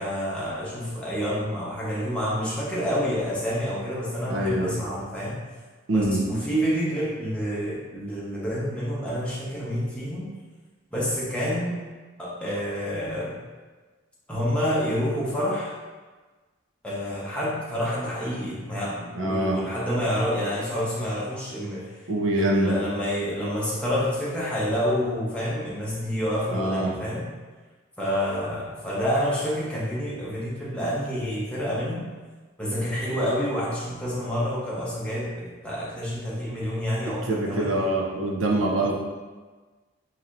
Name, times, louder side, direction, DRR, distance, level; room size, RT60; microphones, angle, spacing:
voice 1, 0.0-5.4 5.9-10.3 10.9-11.8 12.2-13.4 14.3-15.7 16.8-22.0 22.4-27.3 28.0-32.0 32.6-37.8, equal, 5° left, -8 dB, 0.9 m, -28 dB
voice 2, 4.3-4.7 5.9-6.2 19.2-19.6 22.1-22.7 26.5-26.9 37.1-38.9, right 1 dB, 90° right, 0 dB, 0.6 m, -24 dB
4.0 x 2.9 x 2.5 m, 1.3 s
head